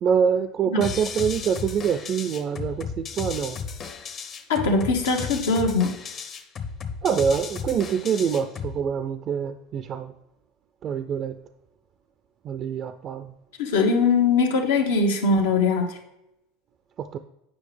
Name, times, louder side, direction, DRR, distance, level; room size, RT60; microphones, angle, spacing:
voice 1, 0.0-3.6 7.0-10.1 10.8-11.3 12.4-13.3 17.0-17.2, right 7 dB, 40° right, 9 dB, 0.3 m, -25 dB
sound 1, 0.8-8.8, left 6 dB, 40° left, 0.8 m, -34 dB
voice 2, 4.5-6.0 13.6-16.0, left 4 dB, 85° left, 3 dB, 1.1 m, -21 dB
8.4 x 5.0 x 3.3 m, 0.88 s
supercardioid pair, 110°, 0 cm